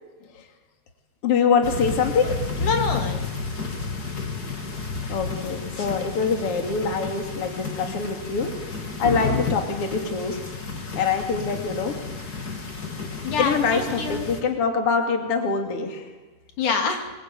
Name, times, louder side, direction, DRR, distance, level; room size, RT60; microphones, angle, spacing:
voice 1, 1.2-2.4 5.1-8.5 9.0-10.4 11.0-12.0 12.5-12.6 13.4-16.1, left 5 dB, 50° left, 4 dB, 3.4 m, -24 dB
sound 1, 1.6-14.4, left 4 dB, 30° left, 2.9 m, -31 dB
voice 2, 2.6-3.2 13.2-14.3 16.6-17.1, left 5 dB, 80° left, 4 dB, 4.2 m, -26 dB
26.5 x 22.0 x 9.1 m, 1.2 s
omnidirectional pair, 3.5 m